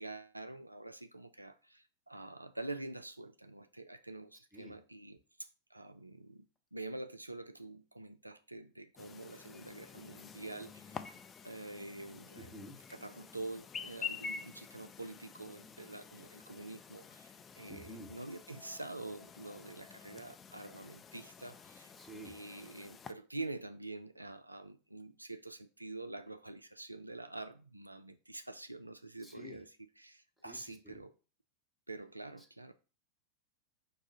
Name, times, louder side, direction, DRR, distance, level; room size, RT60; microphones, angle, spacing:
voice 1, 0.0-12.6 12.9-21.9 22.2-31.1 31.9-32.7, right 2 dB, 85° right, 0.3 m, -46 dB
Chirp tweet, 9.0-23.1, left 6 dB, 20° left, 0.3 m, -49 dB
voice 2, 12.4-12.8 17.7-18.1 21.9-22.3 29.2-29.6 30.4-31.0, right 1 dB, 5° left, 1.0 m, -50 dB
5.2 x 2.4 x 4.0 m
figure-of-eight pair, 90°, 0 cm